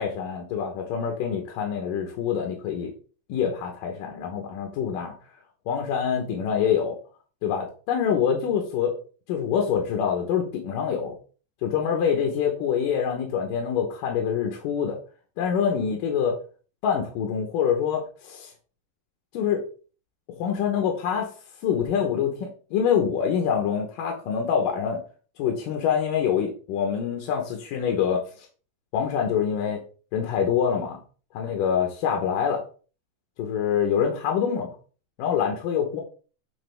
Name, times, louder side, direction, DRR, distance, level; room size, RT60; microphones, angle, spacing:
voice 1, 0.0-2.9 3.3-5.2 5.7-7.0 7.4-9.0 9.3-11.2 11.6-15.0 15.4-16.4 16.8-18.5 19.3-19.7 20.4-21.3 21.6-25.0 25.4-28.5 28.9-29.8 30.1-31.0 31.3-32.6 33.4-34.7 35.2-36.0, left 7 dB, 80° left, 2 dB, 2.7 m, -25 dB
9.4 x 4.3 x 3.5 m, 0.38 s
omnidirectional pair, 3.9 m